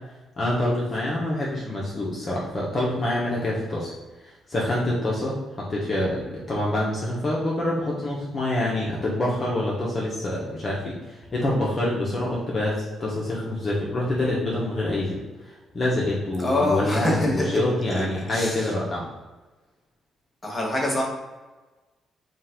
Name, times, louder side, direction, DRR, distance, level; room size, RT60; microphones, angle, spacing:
voice 1, 0.4-3.9 4.2-19.1, left 1 dB, 40° left, -5 dB, 1.1 m, -26 dB
voice 2, 16.4-17.6 17.9-18.7 20.4-21.0, left 1 dB, 15° left, -3 dB, 1.5 m, -25 dB
5.3 x 2.5 x 3.6 m, 1.2 s
cardioid pair, 90°, 0 cm